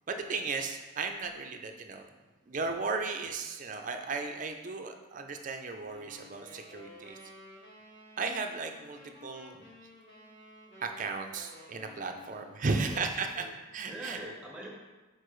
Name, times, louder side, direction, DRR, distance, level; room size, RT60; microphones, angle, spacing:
voice 1, 0.1-2.1 2.5-7.2 8.2-9.5 10.8-13.5 13.7-14.2, right 4 dB, 40° right, 5 dB, 0.5 m, -35 dB
sound 1, 5.8-12.7, left 1 dB, 50° left, 1.8 m, -53 dB
voice 2, 12.7-13.1 13.4-13.5 13.9-14.7, right 1 dB, 5° right, -2 dB, 0.9 m, -43 dB
6.7 x 4.5 x 3.1 m, 1.2 s
head